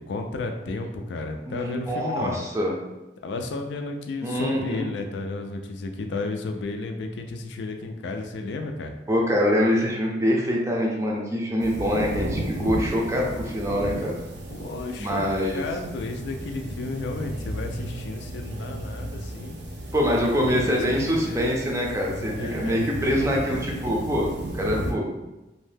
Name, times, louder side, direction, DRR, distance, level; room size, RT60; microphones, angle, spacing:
voice 1, 0.0-2.4 3.2-8.9 14.5-19.6 20.1-20.3 20.6-21.5 22.4-22.8, left 3 dB, 80° left, 4 dB, 0.3 m, -33 dB
voice 2, 1.5-2.7 4.2-4.9 9.1-14.2 15.0-15.6 19.9-25.1, equal, 15° right, -1 dB, 0.4 m, -25 dB
sound 1, 11.6-24.9, right 1 dB, 75° right, 0.6 m, -34 dB
2.6 x 2.1 x 3.3 m, 1.0 s
head